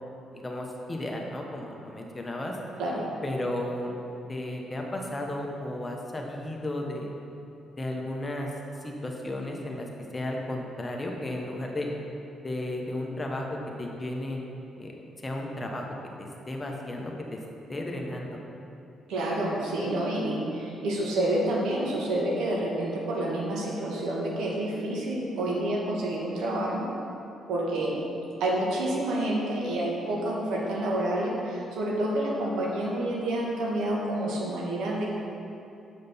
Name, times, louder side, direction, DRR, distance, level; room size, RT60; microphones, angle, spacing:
voice 1, 0.3-2.6 3.2-3.9 4.3-7.1 7.8-8.5 8.8-9.9 10.1-11.9 12.4-13.5 13.8-14.4 14.8-15.0 15.2-15.9 16.2-17.4 17.7-18.4, left 1 dB, 20° left, 0 dB, 1.1 m, -34 dB
voice 2, 19.1-26.9 27.5-28.0 28.4-35.1, right 1 dB, 85° right, -3 dB, 1.6 m, -28 dB
8.0 x 5.0 x 5.6 m, 2.8 s
cardioid pair, 90°, 0 cm